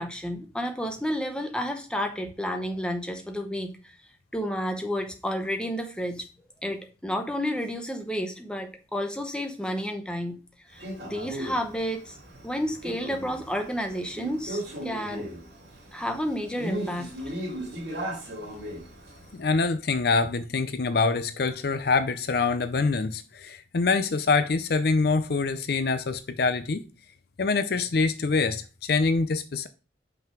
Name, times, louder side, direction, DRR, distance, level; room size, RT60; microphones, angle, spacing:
voice 1, 0.0-3.9 4.3-6.3 6.6-10.4 10.7-12.2 12.4-15.3 15.9-17.4, equal, 5° left, 0.8 m, -31 dB
Male speech man speaking, 10.8-19.3, right 1 dB, 60° right, 2.9 m, -37 dB
voice 2, 19.3-26.8 27.4-29.7, left 4 dB, 55° left, 0.5 m, -25 dB
5.7 x 5.5 x 4.5 m
head